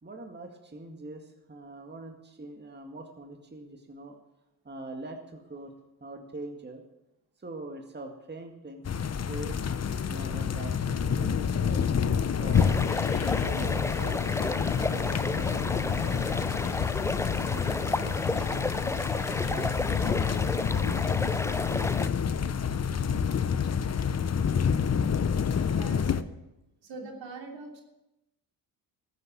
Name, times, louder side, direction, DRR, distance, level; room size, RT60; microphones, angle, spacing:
voice 1, 0.0-4.2 4.6-5.7 6.0-6.8 7.4-9.6 10.1-12.8 13.4-16.9 17.4-21.4, right 2 dB, 20° right, 3 dB, 2.0 m, -43 dB
sound 1, 8.8-26.2, left 7 dB, 35° left, 0.8 m, -28 dB
sound 2, 9.5-19.3, left 8 dB, 65° left, 1.5 m, -45 dB
sound 3, 12.5-22.1, left 2 dB, 5° left, 0.4 m, -32 dB
voice 2, 25.0-26.3 26.8-27.8, right 2 dB, 65° right, 1 dB, 3.2 m, -43 dB
14.5 x 8.1 x 7.4 m, 0.95 s
supercardioid pair, 55°, 47 cm